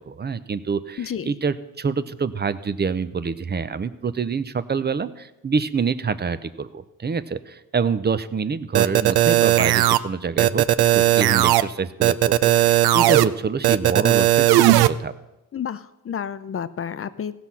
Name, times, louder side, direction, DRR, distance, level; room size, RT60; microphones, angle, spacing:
voice 1, 0.0-10.6 10.9-15.1, right 5 dB, 25° right, 14 dB, 0.6 m, -26 dB
voice 2, 1.0-1.3 15.5-17.4, left 8 dB, 35° left, 14 dB, 0.6 m, -30 dB
sound 1, 8.7-10.0 10.4-11.6 12.0-13.2 13.6-14.9, right 14 dB, 85° right, 0.5 m, -16 dB
16.0 x 6.1 x 5.6 m, 0.96 s
cardioid pair, 85°, 37 cm